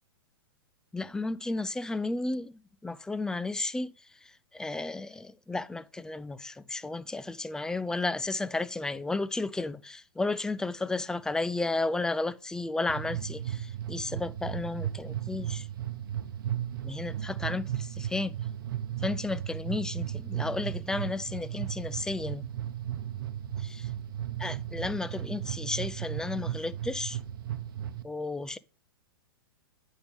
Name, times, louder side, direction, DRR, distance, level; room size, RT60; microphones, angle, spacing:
voice 1, 0.9-2.5 2.8-3.9 4.2-15.7 16.8-18.3 19.0-22.5 23.6-23.9 24.4-27.2 28.0-28.6, left 2 dB, 5° left, 0.4 m, -33 dB
sound 1, 12.9-28.0, right 11 dB, 60° right, 0.9 m, -35 dB
8.7 x 5.3 x 3.3 m
figure-of-eight pair, 105°, 12 cm